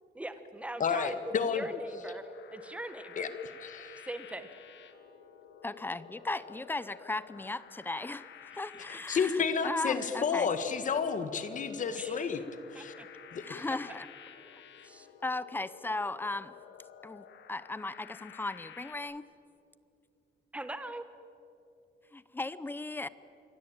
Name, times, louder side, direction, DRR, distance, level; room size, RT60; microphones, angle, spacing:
voice 1, 0.1-3.3 4.0-4.5 8.9-9.0 11.9-12.4 12.7-13.1 13.7-13.8 14.8-15.1 20.5-21.0, right 1 dB, 5° right, 10 dB, 1.3 m, -42 dB
voice 2, 0.8-1.6 3.2-3.3 3.6-3.9 9.1-12.4 12.7-12.9 13.3-13.6, left 6 dB, 40° left, 10 dB, 1.7 m, -31 dB
sound 1, 1.5-19.0, left 8 dB, 75° left, 1.9 m, -52 dB
voice 3, 5.6-8.2 8.5-10.5 13.4-14.1 15.2-16.5 17.0-19.3 22.1-23.1, left 2 dB, 10° left, 16 dB, 0.6 m, -36 dB
28.0 x 22.5 x 8.9 m, 2.9 s
wide cardioid pair, 170°, 19 cm